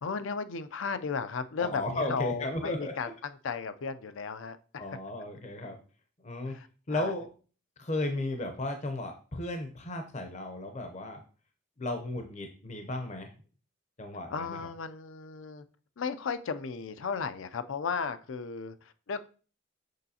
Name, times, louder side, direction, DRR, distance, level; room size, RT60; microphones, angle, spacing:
voice 1, 0.0-4.8 6.5-7.1 14.3-15.6 16.0-19.3, left 5 dB, 75° left, 0.5 m, -35 dB
voice 2, 1.6-3.1 4.8-5.8 6.2-6.6 6.9-7.3 7.8-11.2 11.8-13.3 14.0-14.6, left 1 dB, 35° left, 0.6 m, -35 dB
6.5 x 5.4 x 2.8 m
head